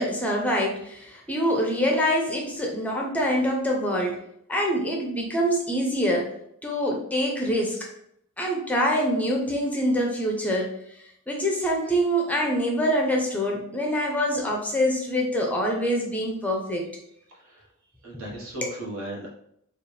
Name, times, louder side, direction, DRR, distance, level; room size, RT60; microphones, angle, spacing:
voice 1, 0.0-4.2 4.5-6.2 6.6-7.8 8.4-10.7 11.3-16.8 18.1-18.2 18.6-18.7, equal, 5° left, 0 dB, 0.5 m, -25 dB
voice 2, 17.3-17.7 18.0-19.3, right 1 dB, 65° right, -4 dB, 1.3 m, -37 dB
4.1 x 2.4 x 3.2 m, 0.73 s
head